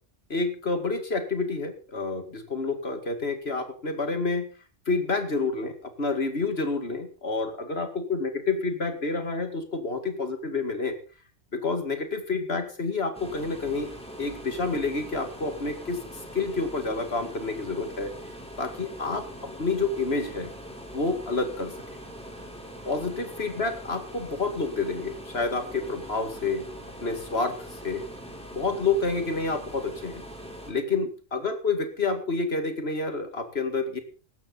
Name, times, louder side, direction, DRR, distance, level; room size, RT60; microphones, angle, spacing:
voice 1, 0.3-4.5 4.9-11.0 11.5-13.9 14.2-18.1 18.6-20.5 20.9-21.7 22.9-26.6 27.0-28.0 28.5-30.2 30.7-34.0, left 3 dB, 60° left, 7 dB, 2.5 m, -29 dB
sound 1, 13.1-30.7, equal, 5° left, 4.3 m, -42 dB
17.0 x 12.5 x 4.1 m, 0.37 s
omnidirectional pair, 1.2 m